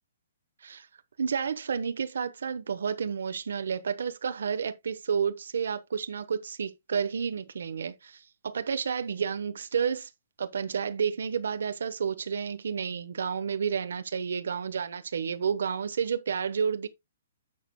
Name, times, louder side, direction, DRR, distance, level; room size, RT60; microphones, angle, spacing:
voice 1, 1.2-10.1 10.4-16.9, right 6 dB, 75° right, 1.0 m, -31 dB
11.0 x 7.0 x 2.2 m
hypercardioid pair, 175°, 0 cm